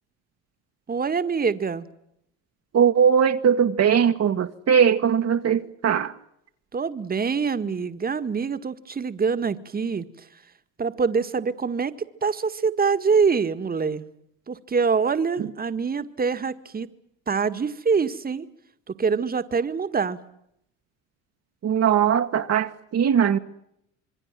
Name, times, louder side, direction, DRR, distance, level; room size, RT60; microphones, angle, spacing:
voice 1, 0.9-1.9 6.7-10.3 10.8-14.0 14.5-16.9 17.3-18.5 19.0-20.2, right 5 dB, 25° right, 1.9 m, -25 dB
voice 2, 2.7-6.2 15.4-15.5 21.6-23.4, right 8 dB, 40° right, 1.7 m, -20 dB
27.0 x 22.5 x 7.6 m
supercardioid pair, 80°, 37 cm